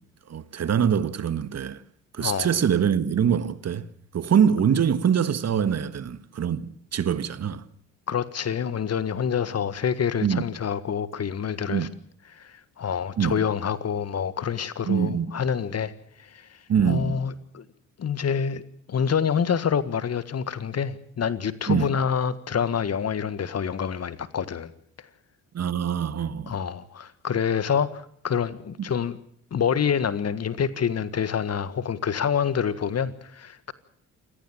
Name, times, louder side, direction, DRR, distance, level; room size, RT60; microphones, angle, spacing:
voice 1, 0.3-1.8 2.1-3.8 4.1-7.6 10.2-10.5 11.7-11.9 13.2-13.4 14.8-15.3 16.7-17.2 21.7-21.9 25.5-26.5, right 8 dB, 45° right, 1.6 m, -24 dB
voice 2, 8.1-11.9 12.4-15.9 16.3-16.5 16.9-17.6 18.0-18.6 18.9-24.7 26.5-29.2 29.5-33.7, left 7 dB, 40° left, 1.7 m, -27 dB
28.5 x 15.5 x 7.5 m
hypercardioid pair, 50°, 37 cm